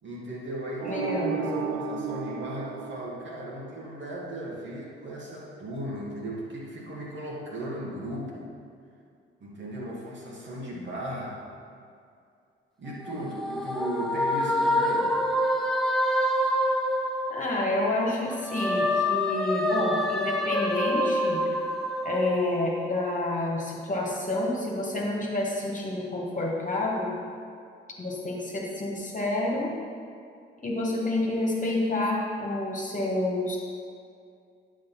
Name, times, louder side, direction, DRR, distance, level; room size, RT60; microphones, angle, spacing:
voice 1, 0.0-1.1 1.3-8.4 9.4-11.4 12.8-15.2, right 1 dB, 40° right, -4 dB, 2.4 m, -36 dB
voice 2, 0.8-1.6 17.3-21.4 22.0-27.1 28.0-29.8 30.6-33.6, left 2 dB, 25° left, -3 dB, 2.2 m, -29 dB
sound 1, 0.8-3.8, right 5 dB, 60° right, 0.8 m, -33 dB
sound 2, 12.9-17.9 18.2-23.0, left 1 dB, ahead, 1.0 m, -27 dB
10.0 x 5.2 x 5.9 m, 2.3 s
figure-of-eight pair, 45°, 29 cm